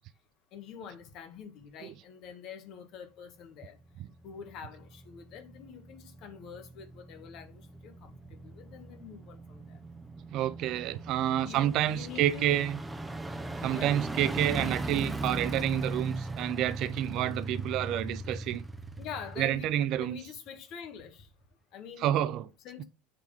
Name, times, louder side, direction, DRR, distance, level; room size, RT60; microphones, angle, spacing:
voice 1, 0.5-3.8 4.2-9.8 11.4-12.6 13.7-13.9 19.0-21.3 21.7-22.1 22.6-22.8, left 7 dB, 55° left, 1.7 m, -46 dB
sound 1, 3.9-20.5 20.8-20.9, right 2 dB, 10° right, 0.8 m, -39 dB
voice 2, 10.3-12.8 13.6-18.6 19.4-20.2 22.0-22.5, right 12 dB, 55° right, 0.5 m, -29 dB
7.7 x 3.5 x 5.1 m
supercardioid pair, 100°, 0 cm